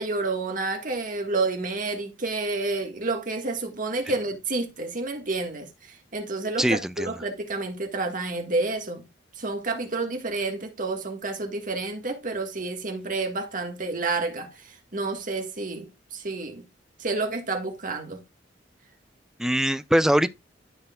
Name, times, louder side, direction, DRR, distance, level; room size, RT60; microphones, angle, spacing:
voice 1, 0.0-9.1 9.4-16.6 17.0-18.2, right 3 dB, 45° right, 1.6 m, -29 dB
voice 2, 6.6-7.1 19.4-20.3, equal, 5° right, 0.3 m, -22 dB
13.0 x 4.6 x 2.3 m
head